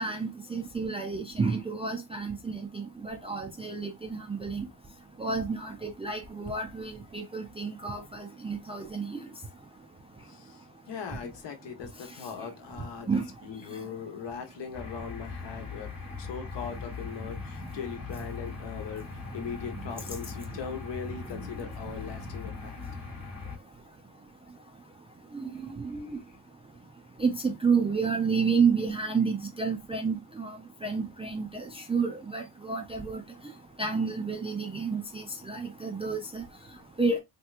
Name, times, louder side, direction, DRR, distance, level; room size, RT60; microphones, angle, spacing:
voice 1, 0.0-4.7 5.2-9.2 13.1-13.2 19.8-20.1 21.3-21.5 25.3-26.2 27.2-33.2 33.8-36.4 37.0-37.2, right 5 dB, 15° right, 0.4 m, -30 dB
voice 2, 10.3-19.0 19.3-22.8 26.0-26.4, left 6 dB, 60° left, 1.0 m, -40 dB
sound 1, 14.7-23.6, left 4 dB, 30° left, 1.2 m, -40 dB
3.3 x 2.9 x 2.4 m
cardioid pair, 135°, 48 cm